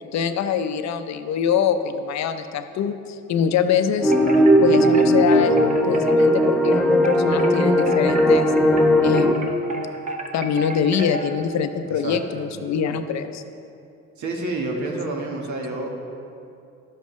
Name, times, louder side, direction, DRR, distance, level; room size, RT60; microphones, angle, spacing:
voice 1, 0.1-4.1 4.6-5.6 5.8-8.5 9.0-9.7 10.3-13.4, left 7 dB, 65° left, 9 dB, 0.6 m, -24 dB
sound 1, 4.0-9.3, equal, ahead, 0.7 m, -17 dB
Wind chime, 4.0-11.4, right 2 dB, 25° right, 0.9 m, -32 dB
voice 2, 11.9-12.5 14.2-15.9, right 2 dB, 70° right, 1 dB, 1.4 m, -29 dB
11.0 x 7.3 x 3.1 m, 2.6 s
cardioid pair, 90°, 30 cm